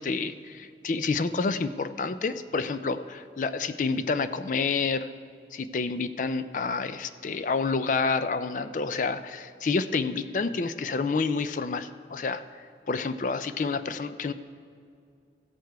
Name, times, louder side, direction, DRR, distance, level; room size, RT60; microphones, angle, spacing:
voice 1, 0.0-5.1 5.5-12.4 12.9-14.3, left 4 dB, 45° left, 12 dB, 0.4 m, -29 dB
15.5 x 6.6 x 4.6 m, 2.4 s
head